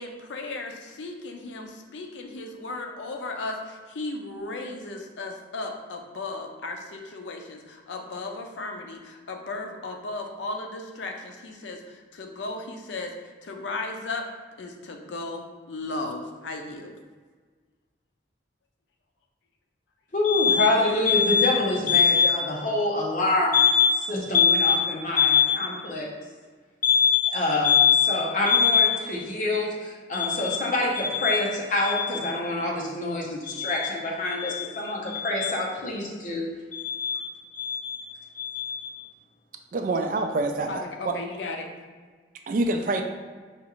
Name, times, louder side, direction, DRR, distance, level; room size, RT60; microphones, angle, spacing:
voice 1, 0.0-13.1 13.4-14.2 14.6-16.9 40.7-41.7, left 2 dB, 85° left, 3 dB, 0.5 m, -35 dB
voice 2, 20.1-26.1 26.8-36.5 36.7-39.0, left 5 dB, 45° left, -2 dB, 0.7 m, -23 dB
voice 3, 39.7-41.1 42.5-43.0, right 2 dB, 45° right, 5 dB, 0.3 m, -26 dB
5.0 x 2.4 x 2.9 m, 1.5 s
head